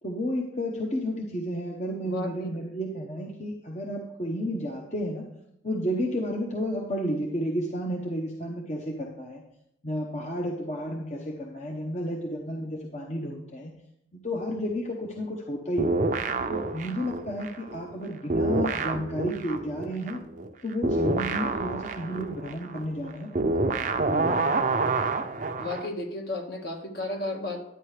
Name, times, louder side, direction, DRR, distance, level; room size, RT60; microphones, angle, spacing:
voice 1, 0.0-5.3 5.6-9.4 9.8-13.7 14.1-16.0 16.5-20.2 20.6-24.4, equal, 40° left, 0 dB, 0.9 m, -32 dB
voice 2, 2.0-2.6 25.6-27.6, left 2 dB, 60° left, 2 dB, 1.6 m, -33 dB
sound 1, 15.8-18.0 18.3-25.9, right 3 dB, 45° right, 0.6 m, -28 dB
11.0 x 9.0 x 3.3 m, 0.82 s
head